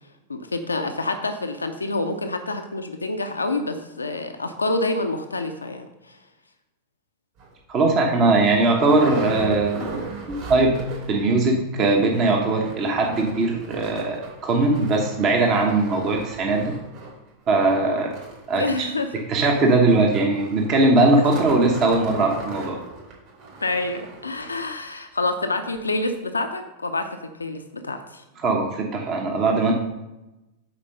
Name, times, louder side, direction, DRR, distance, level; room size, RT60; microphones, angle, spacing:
voice 1, 0.3-6.2 17.7-18.0 18.5-19.1 23.6-28.2, left 2 dB, 80° left, 7 dB, 0.6 m, -27 dB
sound 1, 7.4-7.5 8.0-8.1 8.3-11.3 11.5-11.6 11.9-24.7 25.3-25.4 25.8-25.9, right 3 dB, 50° right, 2.9 m, -38 dB
voice 2, 7.7-10.8 11.1-16.7 17.5-18.1 18.5-18.6 19.3-22.8 28.4-29.7, right 2 dB, 35° right, 1 dB, 1.1 m, -20 dB
8.8 x 4.5 x 5.3 m, 0.98 s
figure-of-eight pair, 90°, 0 cm